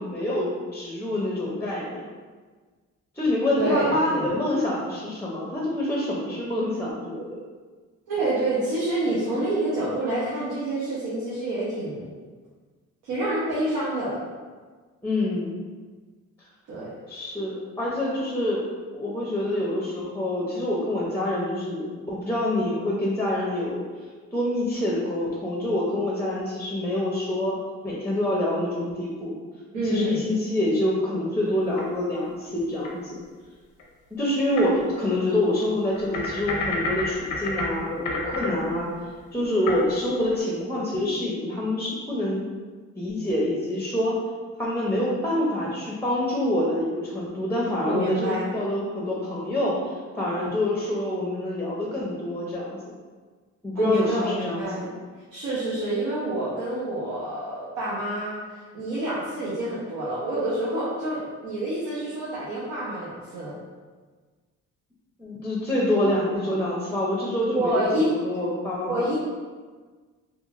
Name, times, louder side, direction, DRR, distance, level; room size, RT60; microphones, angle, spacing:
voice 1, 0.0-2.0 3.2-7.4 15.0-15.6 17.1-18.7 18.9-23.8 24.3-27.6 27.8-29.3 29.8-33.2 34.1-38.9 39.3-42.4 43.0-44.1 44.6-52.8 53.6-54.9 65.2-68.9, left 1 dB, 5° left, -5 dB, 0.5 m, -26 dB
voice 2, 3.6-4.3 8.1-12.1 13.0-14.2 16.7-16.9 29.7-30.2 47.8-48.5 53.7-54.9 55.3-58.4 58.7-63.5 67.5-68.1 68.8-69.1, right 1 dB, 85° right, -7 dB, 0.7 m, -27 dB
sound 1, 31.5-32.2 32.8-32.9 33.8-33.9 34.5-34.7 35.0-35.1 35.9-40.4, left 2 dB, 85° left, 0.6 m, -31 dB
2.9 x 2.4 x 2.4 m, 1.4 s
cardioid pair, 90°, 30 cm